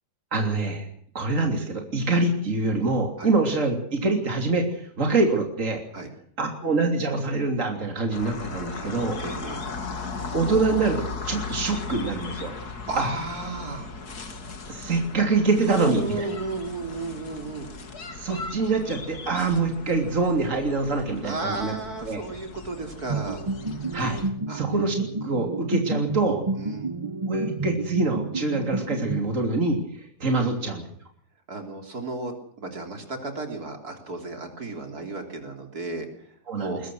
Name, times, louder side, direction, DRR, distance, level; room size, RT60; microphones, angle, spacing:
voice 1, 0.3-0.9 1.2-5.8 6.4-9.2 10.3-12.5 13.0-13.1 14.7-16.2 18.1-21.7 22.0-22.2 23.9-24.2 24.5-26.4 27.3-30.8 36.5-36.8, right 3 dB, 55° right, 3 dB, 3.6 m, -25 dB
sound 1, 8.1-24.3, left 4 dB, 80° left, 2.7 m, -37 dB
voice 2, 9.2-9.6 12.9-14.0 15.7-17.7 21.2-23.4 24.5-24.6 26.6-26.9 30.3-30.6 31.5-36.8, right 2 dB, 75° right, 4 dB, 4.1 m, -33 dB
sound 2, 23.1-29.8, right 3 dB, 25° right, 0.8 m, -30 dB
22.0 x 20.0 x 6.3 m, 0.63 s
omnidirectional pair, 1.6 m